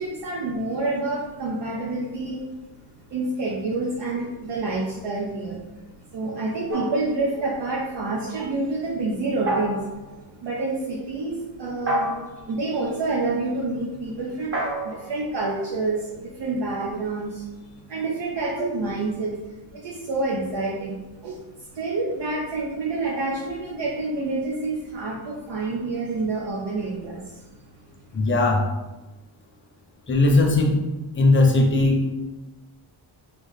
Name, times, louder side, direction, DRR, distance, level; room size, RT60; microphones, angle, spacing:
voice 1, 0.0-2.4 3.1-5.6 6.1-9.9 10.1-17.6 17.9-27.4, right 3 dB, 65° right, -3 dB, 0.7 m, -28 dB
sound 1, 6.7-7.8 9.5-10.1 11.9-12.5 14.5-16.3, right 1 dB, 30° right, 0.9 m, -30 dB
voice 2, 28.1-28.7 30.1-30.8 31.2-32.0, left 2 dB, 25° left, 0 dB, 0.7 m, -18 dB
3.3 x 3.1 x 4.0 m, 1.1 s
wide cardioid pair, 135°, 46 cm